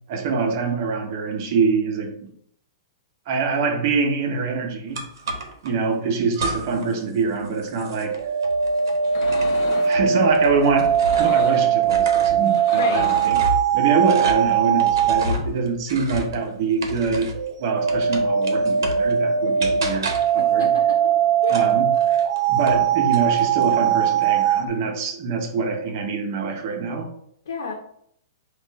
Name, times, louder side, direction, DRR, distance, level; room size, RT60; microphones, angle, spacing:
voice 1, 0.1-2.3 3.3-5.0 5.6-8.1 9.8-17.3 17.6-20.7 21.5-21.9 22.5-27.1, right 4 dB, 50° right, 3 dB, 1.0 m, -24 dB
sound 1, 4.9-5.7 6.3-6.9 7.2-11.5 11.8-17.5 17.9-19.1 19.6-20.4 21.4-22.8 23.1-23.7, right 1 dB, 85° right, 0.9 m, -32 dB
sound 2, 8.0-15.3 17.3-24.6, right 8 dB, 65° right, 0.4 m, -20 dB
sound 3, 9.1-10.0 10.9-11.8 12.4-13.5, left 6 dB, 55° left, 0.6 m, -35 dB
voice 2, 12.7-13.1 20.4-21.1 21.4-21.6 27.5-27.7, left 3 dB, 90° left, 0 dB, 0.9 m, -30 dB
4.3 x 2.5 x 4.0 m, 0.68 s
hypercardioid pair, 145°, 2 cm